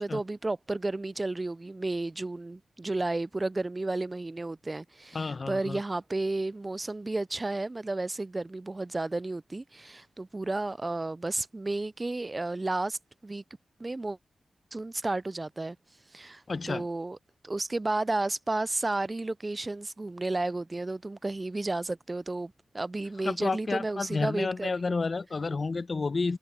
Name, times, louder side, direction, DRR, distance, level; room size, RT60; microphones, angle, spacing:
voice 1, 0.0-13.4 13.8-14.2 14.7-15.8 16.1-17.2 17.4-24.9, right 2 dB, 30° right, 0.4 m, -32 dB
voice 2, 5.1-5.8 16.5-16.9 23.2-26.4, left 4 dB, 50° left, 0.8 m, -30 dB
cardioid pair, 50°, 0 cm